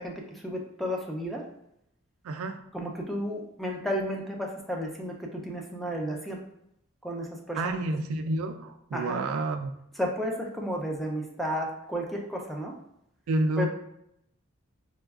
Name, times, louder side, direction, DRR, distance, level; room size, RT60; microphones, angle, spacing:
voice 1, 0.0-1.5 2.7-6.4 7.0-7.6 8.9-9.2 10.0-12.8 13.6-13.7, equal, ahead, 0 dB, 0.4 m, -32 dB
voice 2, 2.2-2.6 7.6-9.7 13.3-13.7, right 2 dB, 90° right, 7 dB, 0.3 m, -29 dB
4.3 x 2.3 x 2.3 m, 0.77 s
head